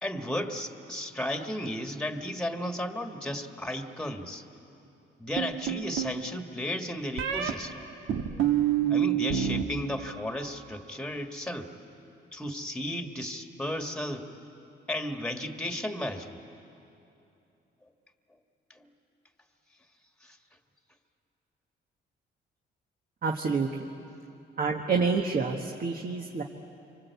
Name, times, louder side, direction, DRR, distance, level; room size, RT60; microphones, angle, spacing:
voice 1, 0.0-4.4 5.2-7.8 8.9-11.7 12.3-14.3 14.9-16.4 18.8-18.9 20.2-20.4, left 1 dB, 5° left, 5 dB, 1.8 m, -34 dB
sound 1, 5.4-6.2 7.2-7.5 8.1-9.6 9.9-10.5, right 10 dB, 80° right, 1.7 m, -27 dB
voice 2, 23.2-23.9 24.6-26.4, right 4 dB, 45° right, 2 dB, 1.5 m, -28 dB
26.5 x 24.5 x 8.4 m, 2.8 s
cardioid pair, 90°, 20 cm